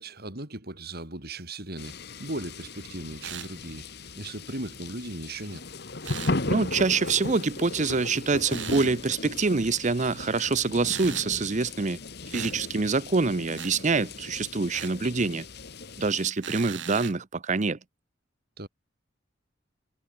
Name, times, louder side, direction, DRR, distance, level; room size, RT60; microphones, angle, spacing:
voice 1, 0.0-3.9 4.2-5.6 18.6-18.7, right 2 dB, 55° right, 5.1 m, -37 dB
sound 1, 1.8-16.3, left 2 dB, 60° left, 1.9 m, -37 dB
sound 2, 3.2-3.5 6.0-6.4 8.5-8.9 10.9-11.3 12.3-12.6 13.6-13.8 14.7-15.0 16.4-17.2, right 9 dB, 75° right, 3.8 m, -38 dB
voice 2, 6.5-12.0 12.3-15.5 16.0-17.8, right 4 dB, 40° right, 0.8 m, -26 dB
head